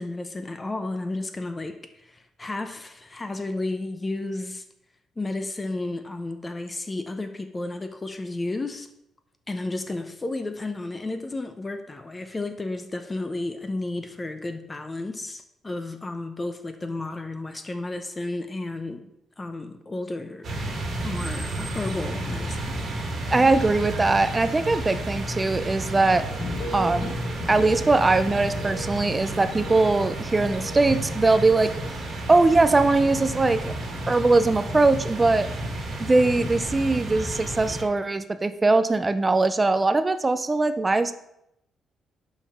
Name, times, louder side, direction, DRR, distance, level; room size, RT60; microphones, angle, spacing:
voice 1, 0.0-4.6 5.2-8.9 9.5-19.1 19.4-20.5 21.0-22.8, left 2 dB, 20° left, 7 dB, 0.6 m, -32 dB
sound 1, 20.4-37.8, right 1 dB, 50° right, 1.6 m, -32 dB
voice 2, 23.3-26.2 26.7-27.2 27.5-31.7 32.3-33.7 34.1-35.5 36.0-41.1, right 3 dB, 20° right, 11 dB, 0.5 m, -21 dB
sound 2, 26.3-32.1 32.4-33.1 33.4-33.9, left 1 dB, 50° left, 0.9 m, -38 dB
5.6 x 4.7 x 5.4 m, 0.80 s
cardioid pair, 90°, 0 cm